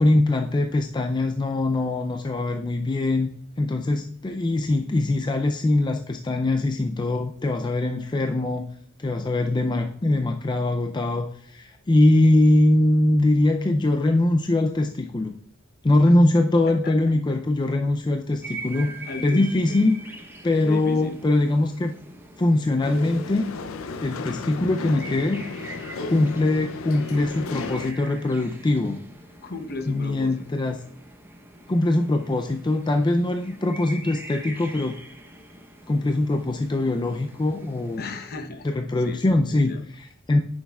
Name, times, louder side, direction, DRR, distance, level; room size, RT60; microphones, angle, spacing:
voice 1, 0.0-3.3 3.6-8.7 9.0-15.3 15.8-18.9 19.2-20.0 20.4-21.9 22.4-23.5 24.0-25.4 26.0-29.0 29.9-30.8 31.7-35.0 35.9-38.0 38.6-40.4, left 2 dB, 20° left, 4 dB, 0.4 m, -22 dB
voice 2, 16.7-17.1 18.8-19.8 20.6-21.2 29.4-30.5 38.0-38.7 39.0-39.2 39.5-39.8, left 3 dB, 50° left, 7 dB, 0.9 m, -35 dB
sound 1, 18.4-38.0, right 1 dB, 10° right, 0.8 m, -43 dB
sound 2, 22.8-27.9, left 3 dB, 80° left, 0.5 m, -34 dB
9.0 x 6.4 x 2.3 m, 0.63 s
head